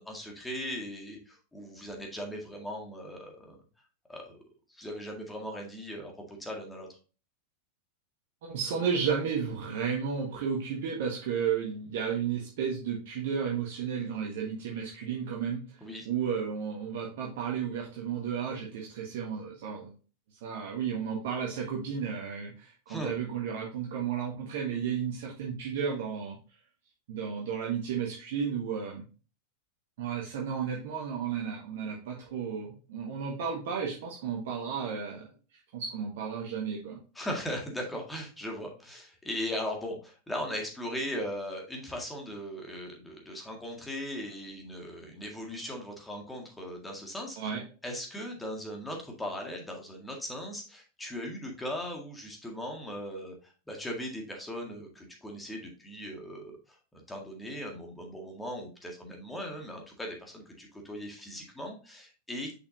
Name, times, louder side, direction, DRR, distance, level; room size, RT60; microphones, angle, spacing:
voice 1, 0.0-3.6 4.1-4.4 4.7-7.0 15.8-16.1 22.9-23.1 37.1-47.5 47.8-62.5, equal, 10° left, 1 dB, 1.9 m, -38 dB
voice 2, 8.4-15.6 16.0-19.9 20.4-26.4 27.1-29.1 30.0-37.0 47.4-47.6, right 7 dB, 55° right, -2 dB, 1.5 m, -33 dB
6.6 x 5.7 x 2.7 m, 0.35 s
figure-of-eight pair, 90°, 0 cm